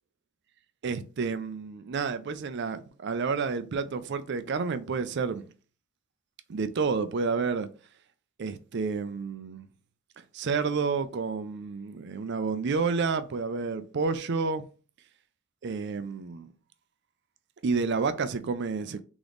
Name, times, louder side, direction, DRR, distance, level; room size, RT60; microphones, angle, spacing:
voice 1, 0.8-5.5 6.5-7.7 8.4-9.7 10.3-14.6 15.6-16.5 17.6-19.0, right 4 dB, 55° right, 0.4 m, -30 dB
3.8 x 3.0 x 3.4 m
head